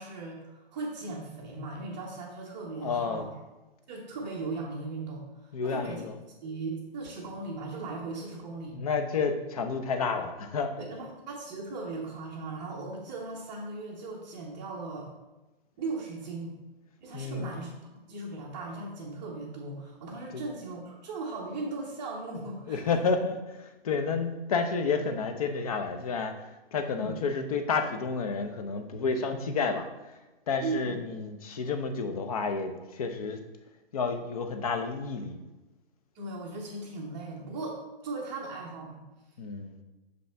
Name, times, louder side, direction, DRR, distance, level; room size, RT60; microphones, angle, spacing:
voice 1, 0.0-3.3 3.9-5.3 5.6-6.0 6.4-8.8 10.8-15.1 15.8-16.6 17.0-17.7 18.1-22.8 26.8-27.2 30.6-31.0 36.1-39.0, right 3 dB, 15° right, -5 dB, 0.7 m, -38 dB
voice 2, 2.8-3.3 5.5-6.1 8.7-10.7 17.1-17.5 20.3-20.4 22.7-29.9 30.5-33.4 33.9-35.4 39.4-39.8, left 4 dB, 40° left, 6 dB, 0.7 m, -30 dB
6.4 x 5.2 x 3.4 m, 1.1 s
hypercardioid pair, 160°, 30 cm